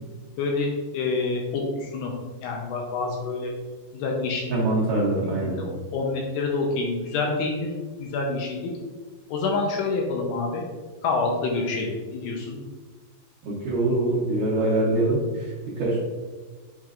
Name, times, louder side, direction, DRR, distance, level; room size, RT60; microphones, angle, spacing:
voice 1, 0.4-2.1 2.4-3.5 3.9-4.6 5.2-7.7 8.0-8.7 9.3-10.7 11.0-12.6, left 3 dB, 75° left, 0 dB, 2.6 m, -27 dB
voice 2, 4.5-5.6 13.4-16.0, right 2 dB, 75° right, -7 dB, 1.9 m, -24 dB
7.4 x 5.9 x 2.5 m, 1.4 s
omnidirectional pair, 5.2 m